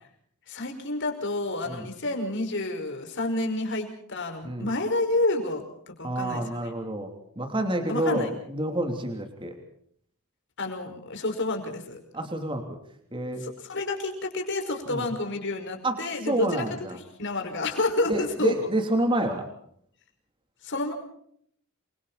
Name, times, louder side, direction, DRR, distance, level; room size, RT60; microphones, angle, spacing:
voice 1, 0.5-6.4 7.9-8.3 10.6-12.0 13.4-16.6 16.9-18.5 20.6-20.9, left 2 dB, 55° left, 4 dB, 5.4 m, -29 dB
voice 2, 6.0-9.6 12.1-12.6 13.1-13.4 14.9-15.0 15.8-16.0 16.2-17.0 18.1-19.5, right 1 dB, 20° right, 5 dB, 3.1 m, -28 dB
29.0 x 24.0 x 4.2 m, 0.66 s
head